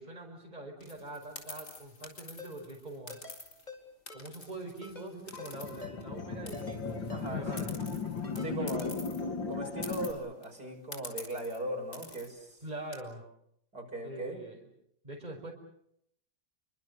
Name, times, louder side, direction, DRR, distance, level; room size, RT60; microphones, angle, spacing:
voice 1, 0.0-3.2 4.1-7.7 8.3-8.9 12.6-13.2 14.0-14.7 15.0-15.5, right 2 dB, 20° right, 1 dB, 5.2 m, -44 dB
sound 1, 0.8-3.7 4.1-6.2 6.5-9.2 9.5-9.6 9.8-10.4 10.9-11.6 11.9-12.3 12.7-13.0, left 2 dB, 40° left, 4.5 m, -47 dB
Ringtone, 2.4-2.5 3.1-3.4 3.7-3.8 4.1-4.2 4.8-5.1 5.4-5.5 5.8-6.0 6.5-6.8 7.1-7.2 7.5-7.7 8.2-8.5 8.8-8.9, left 3 dB, 20° left, 4.5 m, -47 dB
sound 2, 5.3-10.1, left 4 dB, 80° left, 3.1 m, -36 dB
voice 2, 7.1-7.8 8.4-9.0 9.5-12.6 13.7-14.4, right 1 dB, 55° right, 1 dB, 6.4 m, -39 dB
29.5 x 24.0 x 6.7 m, 0.73 s
omnidirectional pair, 2.0 m